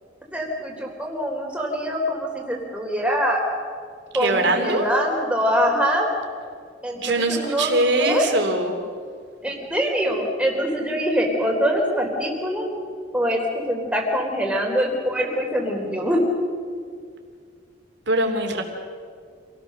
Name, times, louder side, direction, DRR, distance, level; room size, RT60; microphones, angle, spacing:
voice 1, 0.3-3.4 4.1-6.1 6.8-7.7 8.0-8.2 9.4-12.7 13.1-16.2, equal, 5° right, 0 dB, 3.7 m, -24 dB
voice 2, 4.2-4.9 7.0-8.7 18.1-18.6, right 2 dB, 65° right, 3 dB, 3.2 m, -22 dB
27.0 x 18.0 x 6.6 m, 2.1 s
head